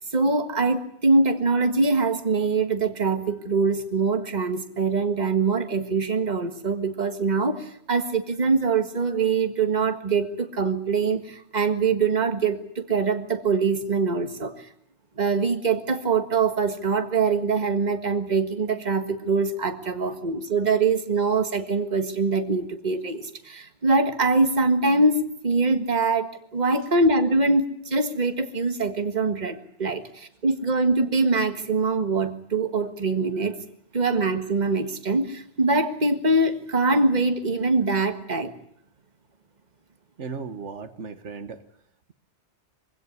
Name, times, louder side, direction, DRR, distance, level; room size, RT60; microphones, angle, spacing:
voice 1, 0.1-14.7 15.2-33.6 33.9-38.5, right 3 dB, 40° right, 7 dB, 1.8 m, -23 dB
voice 2, 40.2-41.6, right 5 dB, 90° right, 10 dB, 1.7 m, -36 dB
23.5 x 16.5 x 9.7 m, 0.71 s
omnidirectional pair, 1.2 m